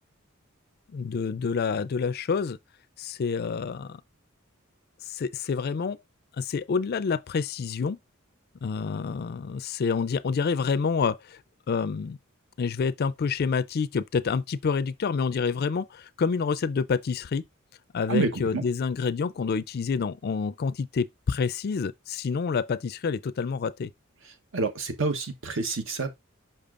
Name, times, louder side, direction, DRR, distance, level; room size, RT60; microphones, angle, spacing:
voice 1, 0.9-2.6 3.0-4.0 5.1-6.0 6.4-8.0 8.6-11.4 11.7-12.2 12.6-17.4 17.9-23.9, left 5 dB, 50° left, 0.4 m, -28 dB
voice 2, 18.1-18.6 24.5-26.2, right 3 dB, 65° right, 1.0 m, -28 dB
6.7 x 5.7 x 2.5 m
head